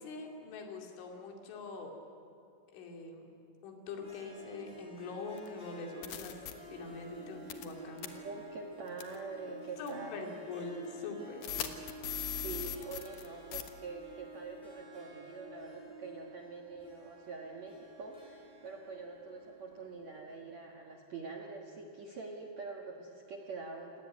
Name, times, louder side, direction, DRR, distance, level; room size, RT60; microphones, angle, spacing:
voice 1, 0.0-1.9 2.7-3.2 3.6-6.4 6.7-8.2 9.8-11.7, left 3 dB, 85° left, 3 dB, 5.0 m, -43 dB
Harp, 3.9-20.4, right 1 dB, 5° left, 4.1 m, -51 dB
sound 1, 5.4-5.5 6.0-6.5 7.5-7.7 8.0-8.1 9.0-9.2 9.9-10.0 11.4-13.3 13.5-13.7, left 10 dB, 65° left, 2.1 m, -38 dB
voice 2, 8.0-10.1 12.3-24.0, right 4 dB, 65° right, 1 dB, 1.8 m, -45 dB
28.5 x 18.0 x 9.4 m, 2.7 s
omnidirectional pair, 5.4 m